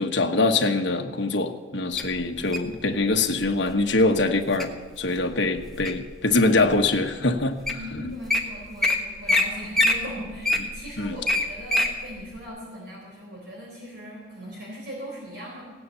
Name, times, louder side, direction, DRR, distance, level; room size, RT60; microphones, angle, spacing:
voice 1, 0.0-7.6 7.9-8.1 11.0-11.2, left 2 dB, 70° left, 5 dB, 1.2 m, -23 dB
Wild animals, 2.0-2.7 3.4-3.7 4.2-4.7 5.2-6.1 6.7-6.8 7.4-7.5 7.7-7.8 8.1-8.4 8.8-9.0 9.3-9.4 9.7-11.9 12.4-12.5, left 2 dB, ahead, 1.3 m, -23 dB
voice 2, 7.5-15.6, equal, 60° right, -3 dB, 4.1 m, -39 dB
17.5 x 9.7 x 6.9 m, 1.4 s
head